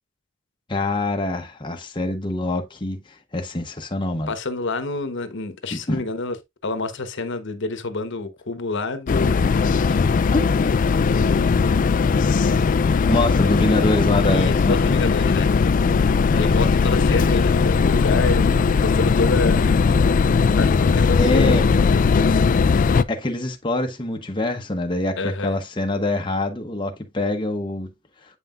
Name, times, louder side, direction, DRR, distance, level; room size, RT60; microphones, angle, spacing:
voice 1, 0.7-4.3 5.7-6.0 9.8-10.0 10.3-10.5 13.1-14.9 16.3-16.6 21.2-21.6 23.1-27.9, left 2 dB, 25° left, 0.8 m, -25 dB
voice 2, 4.3-6.4 6.6-9.9 11.0-11.5 14.2-15.5 16.3-20.1 20.5-21.5 21.8-22.3 25.2-25.6, left 3 dB, 65° left, 1.1 m, -28 dB
sound 1, 9.1-23.0, left 5 dB, 40° left, 0.4 m, -18 dB
8.1 x 5.6 x 2.4 m
head